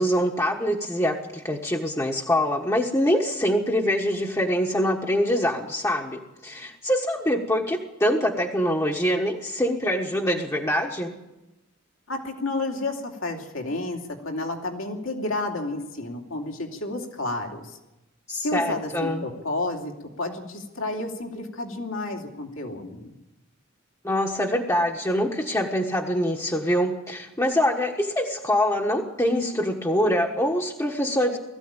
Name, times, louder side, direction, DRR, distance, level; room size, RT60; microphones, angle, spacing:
voice 1, 0.0-11.1 18.3-19.2 24.0-31.4, equal, 15° left, -1 dB, 1.4 m, -24 dB
voice 2, 12.1-17.8 18.4-23.1, left 2 dB, 70° left, 2 dB, 2.8 m, -31 dB
20.5 x 14.5 x 8.9 m, 1.0 s
head